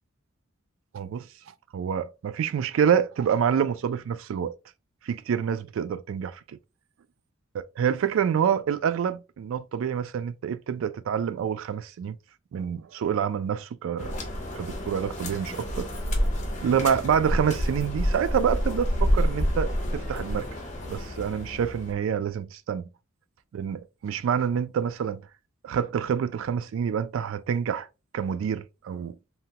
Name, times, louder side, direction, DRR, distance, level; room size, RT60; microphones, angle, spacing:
voice 1, 0.9-1.3 1.7-4.5 5.0-6.6 7.8-12.2 12.5-14.1 14.5-15.9 16.6-20.5 20.9-22.9 23.5-25.2 25.6-27.9 28.1-29.1, right 8 dB, 75° right, 0.3 m, -27 dB
sound 1, 14.0-21.9, equal, 35° left, 0.7 m, -28 dB
2.8 x 2.2 x 2.8 m
head